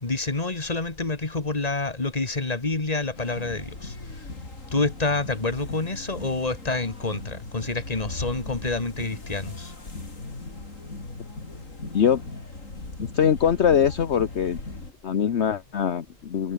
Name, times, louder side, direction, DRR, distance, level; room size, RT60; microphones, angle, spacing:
voice 1, 0.0-4.3 4.7-9.7, left 3 dB, 30° left, 2.3 m, -28 dB
sound 1, 3.1-14.9, left 2 dB, 75° left, 4.7 m, -38 dB
voice 2, 13.1-14.6 15.0-16.5, left 8 dB, 60° left, 1.3 m, -22 dB
omnidirectional pair, 1.3 m